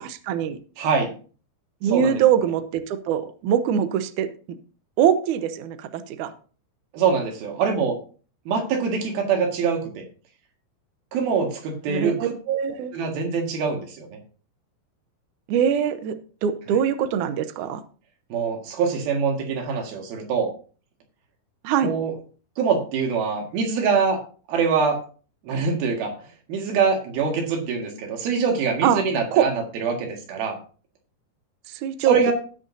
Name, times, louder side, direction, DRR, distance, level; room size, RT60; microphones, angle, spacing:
voice 1, 0.3-0.6 1.8-4.3 5.0-6.3 11.9-12.9 15.5-16.1 16.4-17.8 21.6-21.9 28.8-29.0 29.3-29.5 31.7-32.3, right 9 dB, 85° right, 10 dB, 1.8 m, -22 dB
voice 2, 0.8-1.1 1.8-2.2 6.9-8.0 8.5-9.8 11.1-12.3 12.9-14.2 18.3-20.5 21.8-22.1 22.6-24.2 24.5-25.0 25.4-26.1 26.5-30.6 32.0-32.3, right 5 dB, 70° right, 2 dB, 3.6 m, -24 dB
18.0 x 6.4 x 2.7 m, 0.39 s
omnidirectional pair, 4.7 m